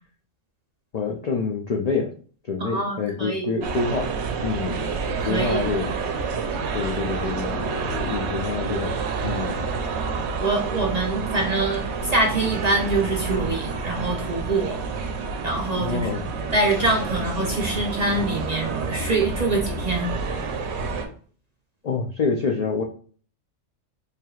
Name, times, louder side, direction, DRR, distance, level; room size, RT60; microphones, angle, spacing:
voice 1, 0.9-2.1 2.5-4.1 4.4-4.8 5.2-6.0 6.7-9.0 9.2-9.6 15.7-16.3 21.8-22.8, left 4 dB, 65° left, 1 dB, 0.4 m, -27 dB
voice 2, 2.6-3.5 5.2-5.7 10.4-14.8 15.4-16.2 16.5-20.4, right 2 dB, 45° right, 0 dB, 0.5 m, -25 dB
sound 1, 3.6-21.1, right 4 dB, 65° right, 0.8 m, -29 dB
4.6 x 3.3 x 2.3 m, 0.43 s
omnidirectional pair, 1.3 m